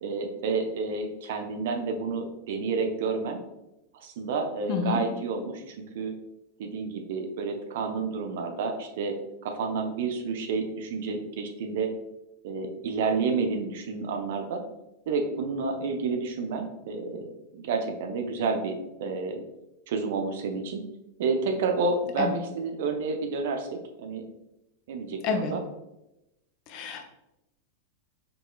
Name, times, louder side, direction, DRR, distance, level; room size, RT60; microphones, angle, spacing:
voice 1, 0.0-3.4 3.9-6.1 6.6-9.2 9.4-11.9 12.4-14.6 15.1-19.4 19.9-20.8 21.2-24.3 24.9-25.6, right 4 dB, 55° right, 5 dB, 0.5 m, -30 dB
voice 2, 4.7-5.0 22.2-22.3 25.2-25.5 26.7-27.1, left 5 dB, 40° left, 5 dB, 0.6 m, -28 dB
5.2 x 2.8 x 2.3 m, 0.92 s
figure-of-eight pair, 90°, 0 cm